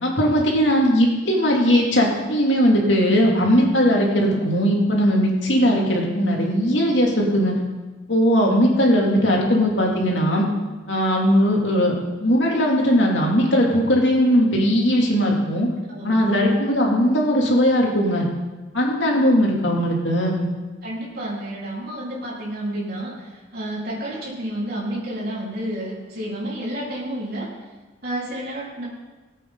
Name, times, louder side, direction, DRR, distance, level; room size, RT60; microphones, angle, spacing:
voice 1, 0.0-7.6 8.1-10.5 10.9-15.7 16.0-18.2 18.7-20.5, equal, 80° left, -2 dB, 2.7 m, -19 dB
voice 2, 15.9-16.5 20.8-27.5 28.0-28.8, right 1 dB, 55° right, -6 dB, 4.1 m, -30 dB
19.0 x 8.4 x 3.9 m, 1.2 s
head